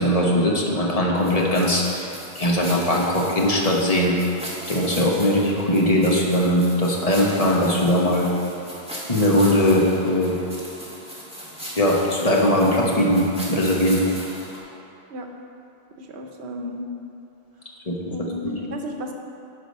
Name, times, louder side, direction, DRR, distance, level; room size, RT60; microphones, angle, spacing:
voice 1, 0.0-2.1 2.3-4.1 4.7-8.3 9.1-10.3 11.8-14.0 17.9-18.0, left 1 dB, 35° left, -2 dB, 1.2 m, -20 dB
sound 1, 1.2-14.6, equal, 5° right, 1.7 m, -38 dB
voice 2, 16.0-16.8 18.1-19.1, equal, 90° right, 3 dB, 1.1 m, -33 dB
11.5 x 5.0 x 5.4 m, 2.7 s
omnidirectional pair, 1.1 m